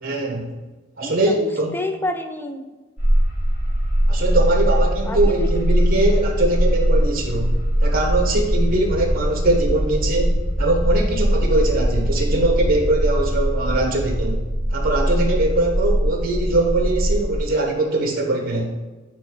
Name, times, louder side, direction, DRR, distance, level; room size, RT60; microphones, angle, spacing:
voice 1, 0.0-0.5 1.0-1.7 4.1-7.5 7.8-14.4 14.7-18.7, right 2 dB, 45° right, 2 dB, 1.1 m, -21 dB
voice 2, 1.0-2.7 5.0-5.5, left 1 dB, 10° left, 7 dB, 0.4 m, -29 dB
sound 1, 3.0-17.4, equal, 45° left, 1.5 m, -21 dB
8.7 x 3.1 x 4.7 m, 1.2 s
head